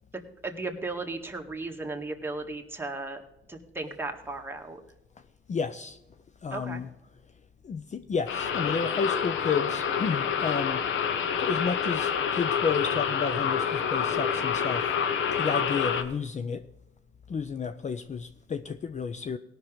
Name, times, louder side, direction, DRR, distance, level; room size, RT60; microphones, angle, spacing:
voice 1, 0.4-3.2 3.5-4.8 6.5-6.8, right 2 dB, 10° right, 1.8 m, -35 dB
voice 2, 5.5-6.0 6.4-6.9 7.6-10.8 11.4-15.0 15.3-16.7 17.3-19.4, left 5 dB, 35° left, 0.6 m, -31 dB
sound 1, 8.3-16.0, left 7 dB, 75° left, 1.1 m, -28 dB
17.5 x 6.1 x 5.1 m
cardioid pair, 90°, 20 cm